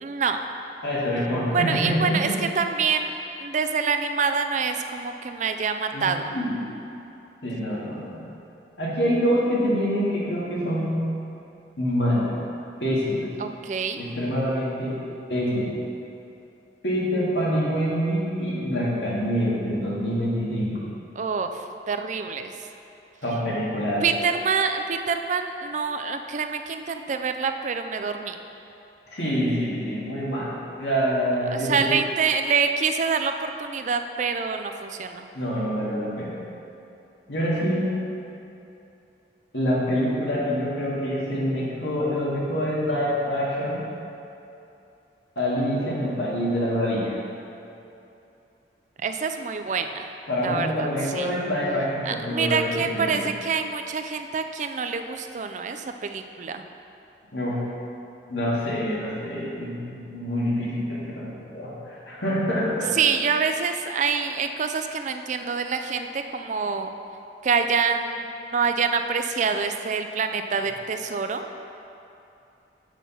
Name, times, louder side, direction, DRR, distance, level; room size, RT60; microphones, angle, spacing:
voice 1, 0.0-0.4 1.5-2.3 2.6-6.3 13.4-14.0 21.2-22.5 24.0-28.4 31.5-35.3 49.0-50.1 50.4-50.9 51.1-51.3 52.0-56.7 63.0-66.9 67.4-71.4, right 5 dB, 45° right, 7 dB, 0.4 m, -26 dB
voice 2, 0.8-2.4 5.9-6.6 7.4-8.3 8.8-11.0 11.8-12.3 12.8-13.3 14.0-15.0 15.3-15.7 16.8-20.8 23.2-24.0 29.1-30.5 30.8-31.9 35.3-36.4 37.3-37.9 39.5-43.8 45.4-47.2 50.3-53.2 57.3-57.6 58.3-62.9, equal, 85° left, -6 dB, 2.0 m, -26 dB
7.4 x 5.9 x 5.4 m, 2.8 s
head